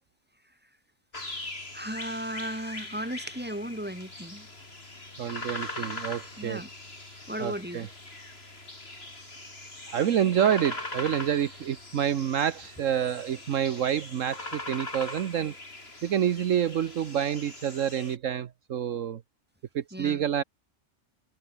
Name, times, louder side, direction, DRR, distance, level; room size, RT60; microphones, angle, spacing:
sound 1, 1.1-18.2, left 2 dB, 45° left, 4.3 m, -41 dB
voice 1, 1.7-4.5 6.4-6.7 7.3-7.9 9.9-10.1 19.9-20.2, equal, 5° right, 5.4 m, -35 dB
voice 2, 5.2-6.6 7.4-7.9 9.9-15.6 16.0-19.2 19.7-20.4, right 9 dB, 70° right, 1.3 m, -28 dB
omnidirectional pair, 1.4 m